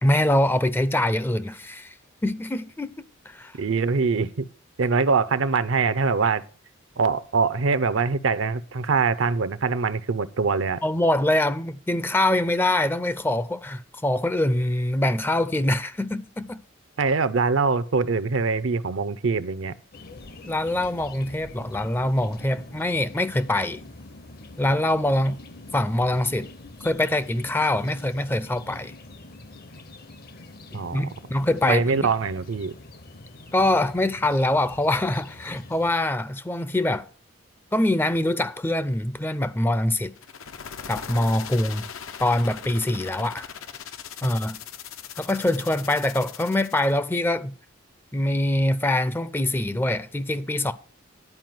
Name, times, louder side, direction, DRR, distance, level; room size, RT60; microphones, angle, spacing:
voice 1, 0.0-1.9 2.2-3.5 10.8-16.6 20.4-23.8 24.6-25.4 25.7-26.5 26.8-28.9 30.7-32.1 33.5-37.1 37.7-40.1 40.9-41.9 42.2-43.5 44.2-44.6 45.2-47.5 48.1-50.7, left 1 dB, 10° left, 0.4 m, -24 dB
voice 2, 3.6-4.4 4.8-6.4 7.0-10.8 17.0-19.8 30.7-31.1 31.6-32.7, right 4 dB, 70° right, 0.6 m, -23 dB
sound 1, 19.9-35.9, left 2 dB, 50° left, 0.7 m, -45 dB
sound 2, 40.2-47.0, left 7 dB, 80° left, 0.7 m, -40 dB
11.0 x 4.7 x 7.6 m
head